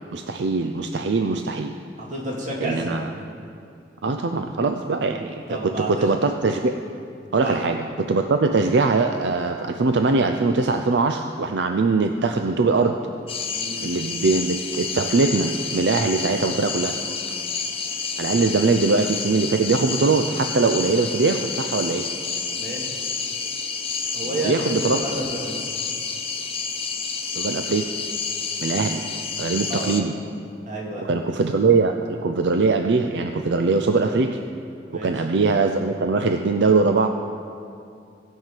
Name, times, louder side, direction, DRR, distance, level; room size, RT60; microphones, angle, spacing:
voice 1, 0.1-1.8 2.6-3.0 4.0-6.7 7.3-13.0 13.8-17.0 18.2-22.1 24.4-25.0 27.3-27.9 28.6-29.0 29.4-30.1 31.1-34.4 34.9-37.1, right 3 dB, 75° right, 6 dB, 0.5 m, -21 dB
voice 2, 2.0-3.1 5.5-6.1 7.3-7.6 13.6-13.9 22.6-22.9 24.1-25.5 29.7-29.9 30.7-31.1 34.9-35.1, right 1 dB, 45° right, -3 dB, 2.5 m, -30 dB
sound 1, 13.3-30.0, left 5 dB, 35° left, 0.9 m, -29 dB
16.5 x 5.6 x 7.5 m, 2.5 s
head